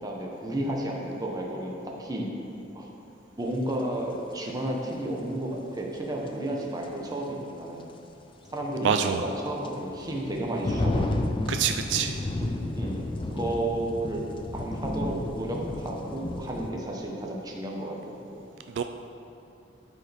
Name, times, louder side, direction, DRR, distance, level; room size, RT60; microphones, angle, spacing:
voice 1, 0.0-2.3 2.7-2.9 3.4-7.9 8.5-11.1 12.7-14.2 14.5-18.4, right 1 dB, 20° right, -1 dB, 1.0 m, -32 dB
sound 1, 3.7-3.8 6.3-6.4 6.8-6.9 8.5-16.7, left 1 dB, 25° left, 0.4 m, -32 dB
voice 2, 8.8-9.3 11.5-12.2 18.7-18.8, right 7 dB, 70° right, 7 dB, 0.3 m, -26 dB
12.5 x 4.8 x 3.4 m, 2.7 s
head